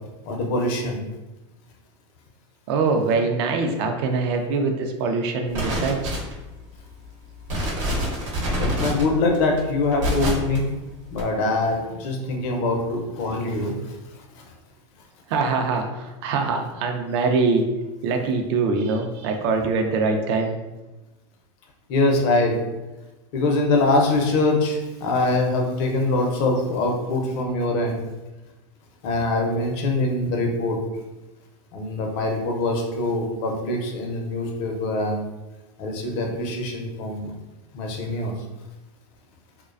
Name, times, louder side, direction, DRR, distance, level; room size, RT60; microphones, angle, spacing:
voice 1, 0.3-1.0 8.6-10.7 11.1-13.7 21.9-22.5 23.3-28.0 29.0-30.8 31.7-35.2 35.8-37.3 37.7-38.3, left 2 dB, 55° left, 1 dB, 0.6 m, -23 dB
voice 2, 2.7-6.2 15.3-17.6 18.0-20.5, right 4 dB, 60° right, 4 dB, 0.4 m, -23 dB
sound 1, 5.5-6.5 7.0-7.1 7.4-10.6 11.1-11.2, equal, 85° right, 0.9 m, -26 dB
2.4 x 2.2 x 2.4 m, 1.1 s
supercardioid pair, 130°, 15 cm